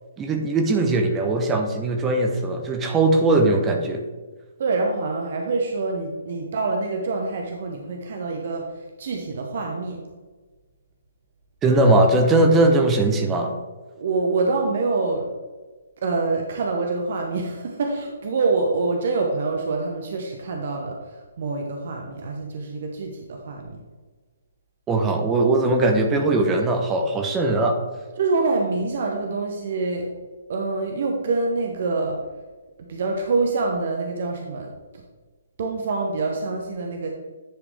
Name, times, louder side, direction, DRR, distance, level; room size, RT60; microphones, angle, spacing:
voice 1, 0.2-4.1 11.6-13.5 24.9-27.8, right 2 dB, 15° right, 4 dB, 0.9 m, -20 dB
voice 2, 4.6-10.0 14.0-15.3 16.0-23.8 28.2-30.1 30.5-32.2 32.8-35.0 35.6-37.1, right 3 dB, 55° right, 1 dB, 1.0 m, -26 dB
10.0 x 5.2 x 3.3 m, 1.3 s
figure-of-eight pair, 130°, 0 cm